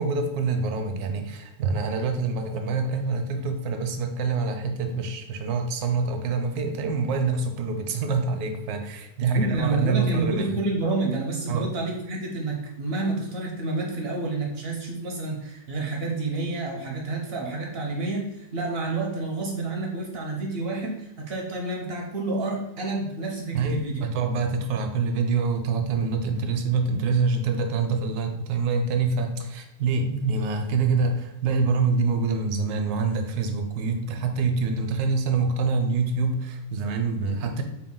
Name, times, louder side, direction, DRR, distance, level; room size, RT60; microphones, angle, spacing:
voice 1, 0.0-10.5 11.5-11.7 23.5-37.6, right 4 dB, 85° right, 5 dB, 1.1 m, -26 dB
voice 2, 9.2-24.0, right 3 dB, 65° right, 0 dB, 0.6 m, -29 dB
4.3 x 2.2 x 3.7 m, 0.86 s
omnidirectional pair, 1.6 m